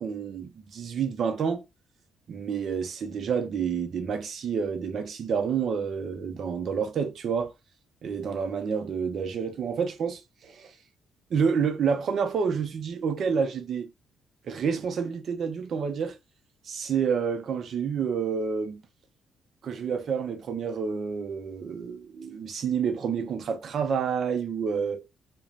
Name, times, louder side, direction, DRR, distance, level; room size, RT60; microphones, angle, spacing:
voice 1, 0.0-1.6 2.3-7.5 8.0-10.7 11.3-13.9 14.5-16.2 16.7-18.8 19.6-25.0, right 6 dB, 60° right, 0.6 m, -29 dB
2.4 x 2.2 x 3.0 m
cardioid pair, 90°, 0 cm